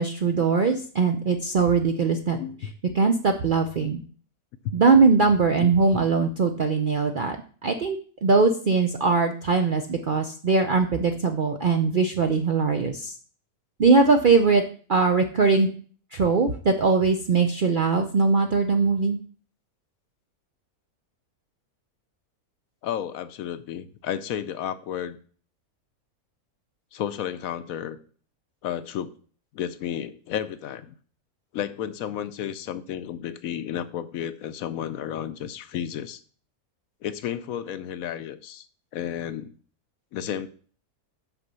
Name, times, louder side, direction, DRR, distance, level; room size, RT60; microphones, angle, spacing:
voice 1, 0.0-2.4 2.9-4.0 4.7-7.4 7.6-13.1 13.8-14.6 14.9-15.7 16.1-19.2, right 4 dB, 60° right, 5 dB, 0.5 m, -21 dB
voice 2, 2.4-2.7 4.6-4.7 5.6-6.0 22.8-25.2 26.9-28.0 28.6-29.1 29.5-30.9 31.5-36.2 37.0-38.7 38.9-39.5 40.1-40.5, left 10 dB, 70° left, 12 dB, 1.0 m, -32 dB
6.0 x 5.1 x 6.7 m, 0.43 s
omnidirectional pair, 1.6 m